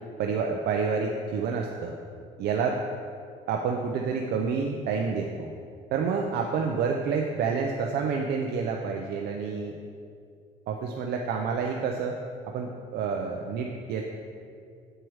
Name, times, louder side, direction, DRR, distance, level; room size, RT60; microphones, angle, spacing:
voice 1, 0.2-1.9 2.4-2.8 3.5-5.5 5.9-9.7 10.7-12.1 12.5-14.0, right 5 dB, 75° right, 2 dB, 0.6 m, -28 dB
7.6 x 4.6 x 4.7 m, 2.3 s
cardioid pair, 110°, 17 cm